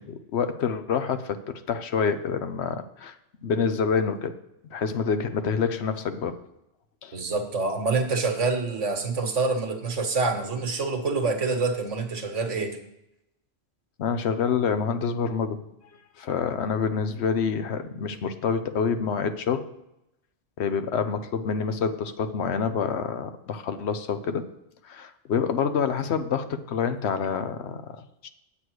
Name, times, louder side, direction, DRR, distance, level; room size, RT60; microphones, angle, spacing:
voice 1, 0.0-3.2 3.4-4.3 4.7-6.4 7.0-7.2 14.0-15.6 16.2-19.7 20.6-24.5 24.8-28.3, left 6 dB, 65° left, 10 dB, 0.9 m, -27 dB
voice 2, 7.1-12.8, right 3 dB, 85° right, 5 dB, 1.6 m, -26 dB
8.6 x 7.9 x 4.6 m, 0.86 s
omnidirectional pair, 1.2 m